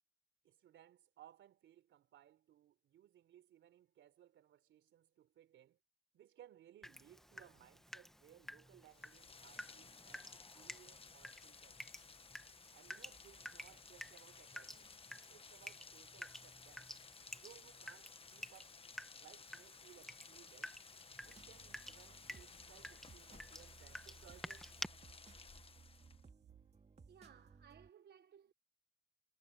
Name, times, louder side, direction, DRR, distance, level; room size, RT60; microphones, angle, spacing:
voice 1, 0.4-5.8 6.1-11.8 12.7-14.9 15.3-16.9 17.4-18.7 19.2-20.8 21.2-24.7, right 11 dB, 75° right, 3.8 m, -63 dB
Water tap faucet / Drip, 6.8-24.9, equal, ahead, 1.3 m, -52 dB
Rain, 8.9-26.3, left 4 dB, 30° left, 1.2 m, -58 dB
sound 1, 21.2-27.9, right 4 dB, 30° right, 2.4 m, -62 dB
voice 2, 26.0-26.6 27.1-28.5, right 8 dB, 55° right, 1.1 m, -62 dB
cardioid pair, 90°, 20 cm